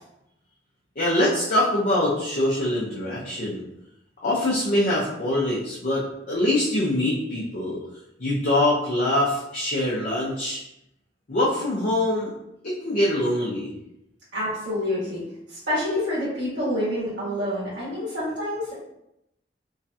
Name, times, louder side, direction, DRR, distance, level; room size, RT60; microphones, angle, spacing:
voice 1, 1.0-3.6 4.2-7.8 8.2-10.6 11.3-12.3 12.6-13.7, left 1 dB, 50° left, -7 dB, 0.6 m, -24 dB
voice 2, 14.3-15.2 15.5-18.8, left 1 dB, 85° right, -8 dB, 1.5 m, -27 dB
3.1 x 2.3 x 2.7 m, 0.83 s
head